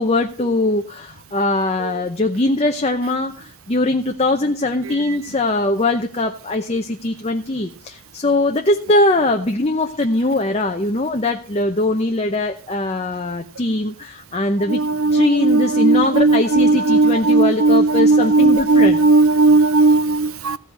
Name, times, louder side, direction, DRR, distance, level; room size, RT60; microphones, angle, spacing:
voice 1, 0.0-14.8 15.1-19.0, left 2 dB, 30° left, 0.7 m, -21 dB
voice 2, 14.7-20.6, right 3 dB, 70° right, 0.7 m, -15 dB
15.5 x 5.3 x 7.0 m
head